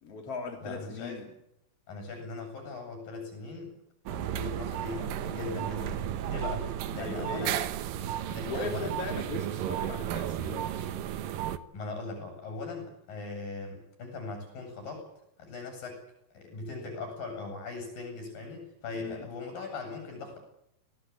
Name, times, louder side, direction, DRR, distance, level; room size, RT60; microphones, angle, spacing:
voice 1, 0.0-1.3 7.0-7.6 8.5-10.7 18.9-19.2, left 3 dB, 40° left, 2 dB, 3.7 m, -38 dB
voice 2, 0.6-1.2 1.9-3.8 4.1-7.6 8.3-9.0 11.7-15.1 15.4-16.0 16.3-20.4, left 3 dB, 60° left, 4 dB, 9.8 m, -39 dB
sound 1, 4.1-11.6, right 11 dB, 70° right, 2.6 m, -33 dB
26.0 x 19.0 x 8.9 m, 0.78 s
omnidirectional pair, 4.5 m